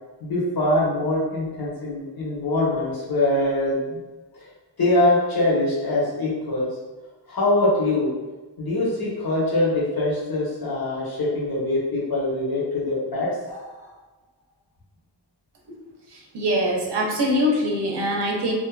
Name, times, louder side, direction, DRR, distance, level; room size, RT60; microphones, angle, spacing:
voice 1, 0.2-4.0 4.3-4.5 4.8-6.7 7.3-8.1 8.6-13.9, left 1 dB, 55° left, -6 dB, 1.0 m, -23 dB
voice 2, 16.1-18.5, equal, 70° right, -1 dB, 0.6 m, -23 dB
2.5 x 2.4 x 2.3 m, 1.2 s
wide cardioid pair, 80°, 44 cm